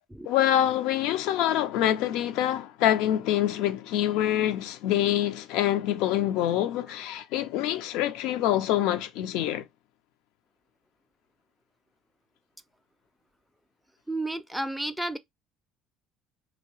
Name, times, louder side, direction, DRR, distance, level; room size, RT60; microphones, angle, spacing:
voice 1, 0.3-9.7, left 12 dB, 75° left, 0.4 m, -25 dB
voice 2, 14.1-15.2, right 1 dB, ahead, 0.4 m, -31 dB
2.8 x 2.8 x 3.0 m
hypercardioid pair, 70°, 0 cm